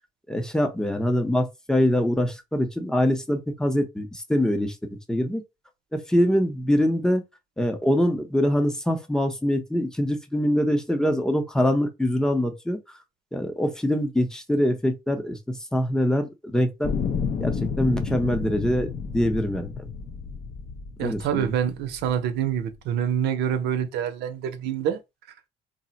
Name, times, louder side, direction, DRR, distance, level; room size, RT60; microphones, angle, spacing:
voice 1, 0.3-4.8 5.1-5.4 5.9-7.2 7.6-12.8 13.3-16.9 17.4-19.9 21.0-21.5, equal, 5° left, 0.6 m, -24 dB
sound 1, 16.8-22.1 22.8-22.9, left 6 dB, 45° left, 0.5 m, -31 dB
voice 2, 21.0-25.0, right 9 dB, 80° right, 0.6 m, -26 dB
2.4 x 2.0 x 3.9 m
cardioid pair, 110°, 17 cm